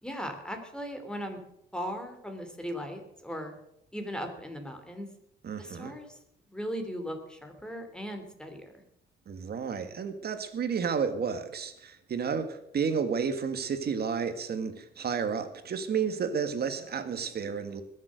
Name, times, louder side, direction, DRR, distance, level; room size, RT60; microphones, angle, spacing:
voice 1, 0.0-1.4 1.7-3.5 3.9-5.1 5.6-6.2 6.5-8.7, equal, 5° left, 5 dB, 3.1 m, -38 dB
voice 2, 5.4-5.9 9.3-17.8, right 6 dB, 55° right, 9 dB, 1.8 m, -31 dB
20.5 x 7.5 x 6.4 m, 0.78 s
cardioid pair, 90°, 20 cm